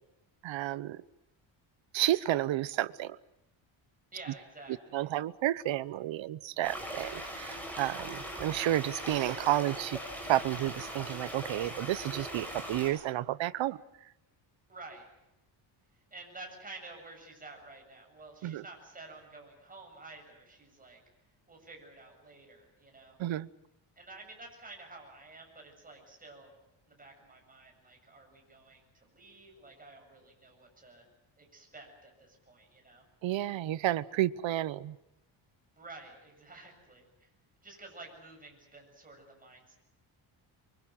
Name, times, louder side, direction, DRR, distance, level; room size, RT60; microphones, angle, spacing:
voice 1, 0.4-1.0 1.9-3.2 4.9-10.0 10.3-13.8 18.4-18.6 23.2-23.5 33.2-35.0, right 14 dB, 65° right, 17 dB, 1.0 m, -31 dB
voice 2, 4.1-5.1 14.7-15.1 16.1-21.0 21.5-23.2 24.0-26.5 26.9-31.1 31.4-33.0 35.8-37.3 37.6-39.8, right 2 dB, 15° right, 1 dB, 7.6 m, -51 dB
sound 1, 6.6-12.9, equal, 5° left, 7.3 m, -40 dB
24.5 x 24.0 x 7.7 m, 0.89 s
cardioid pair, 150°, 49 cm